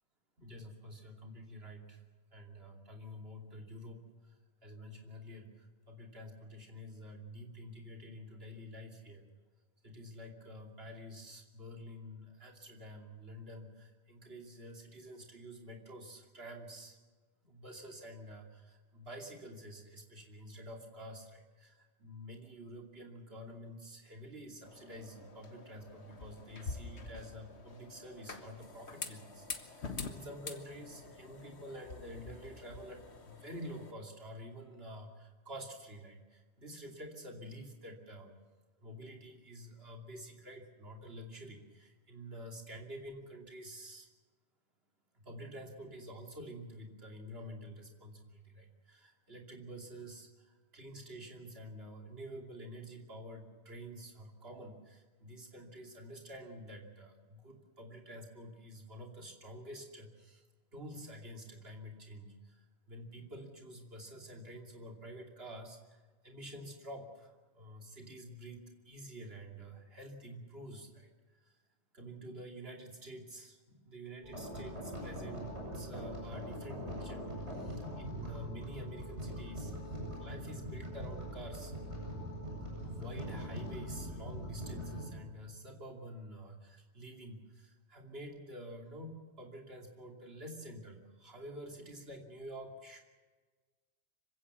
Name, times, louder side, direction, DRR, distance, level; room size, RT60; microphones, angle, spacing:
voice 1, 0.4-2.0 2.3-4.4 4.6-9.3 9.8-17.0 17.4-38.4 38.8-44.1 45.1-60.4 60.7-71.1 71.4-71.6 71.9-81.7 82.8-93.0, equal, 65° right, 1 dB, 3.1 m, -49 dB
sound 1, 24.6-33.9, left 4 dB, 80° left, 1.8 m, -47 dB
sound 2, 74.2-85.1, equal, 85° right, 7.0 m, -42 dB
25.5 x 16.0 x 7.1 m, 1.4 s
omnidirectional pair, 1.1 m